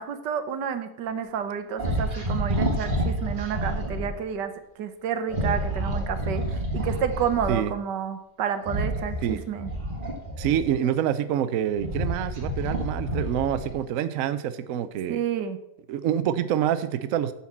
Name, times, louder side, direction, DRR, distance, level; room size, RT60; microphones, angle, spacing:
voice 1, 0.0-4.5 4.8-9.7 15.1-15.6, right 8 dB, 80° right, 10 dB, 1.5 m, -30 dB
sound 1, 1.8-4.1 5.3-7.6 8.6-10.9 11.5-13.8, right 1 dB, 30° right, 1.5 m, -29 dB
voice 2, 10.4-15.2 15.9-17.3, right 10 dB, 65° right, 12 dB, 0.8 m, -26 dB
9.6 x 4.4 x 7.2 m, 0.81 s
omnidirectional pair, 1.8 m